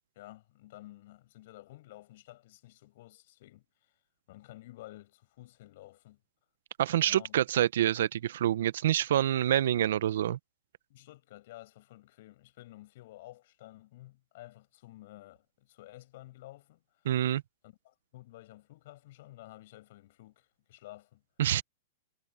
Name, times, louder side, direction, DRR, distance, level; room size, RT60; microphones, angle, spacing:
voice 1, 0.1-3.7 4.3-6.2 7.0-7.7 10.9-17.0 17.6-21.2, left 17 dB, 60° left, 7.9 m, -52 dB
voice 2, 6.8-10.4 17.0-17.4 21.4-21.6, right 11 dB, 75° right, 0.9 m, -27 dB
hypercardioid pair, 125°, 0 cm